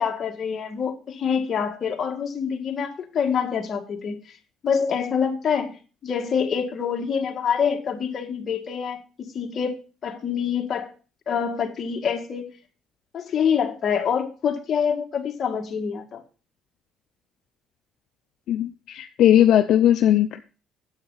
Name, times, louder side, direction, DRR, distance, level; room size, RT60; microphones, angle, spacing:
voice 1, 0.0-4.2 4.6-5.7 6.0-9.0 9.3-10.9 11.3-12.4 13.1-16.2, left 7 dB, 45° left, 1.7 m, -26 dB
voice 2, 18.5-20.4, left 11 dB, 70° left, 0.5 m, -18 dB
9.8 x 8.2 x 3.9 m
cardioid pair, 115°, 0 cm